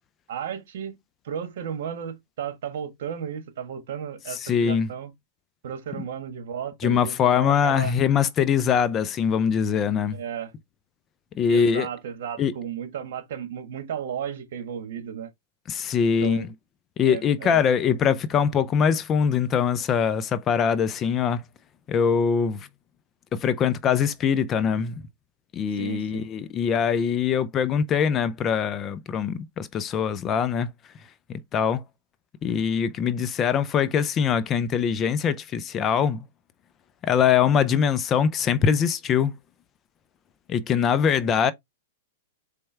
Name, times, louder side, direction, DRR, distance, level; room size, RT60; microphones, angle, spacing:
voice 1, 0.3-1.0 1.2-5.1 5.6-7.9 10.1-10.5 11.5-15.3 16.0-16.5 17.1-17.6 25.7-26.3, right 8 dB, 65° right, 1.4 m, -34 dB
voice 2, 4.3-4.9 6.8-10.2 11.4-11.9 12.4-12.5 15.7-16.5 17.0-21.4 21.9-22.7 23.3-25.0 25.5-30.7 31.3-31.8 32.4-36.2 37.0-39.3 40.5-41.5, left 7 dB, 25° left, 0.4 m, -23 dB
4.4 x 3.3 x 3.3 m
hypercardioid pair, 140°, 0 cm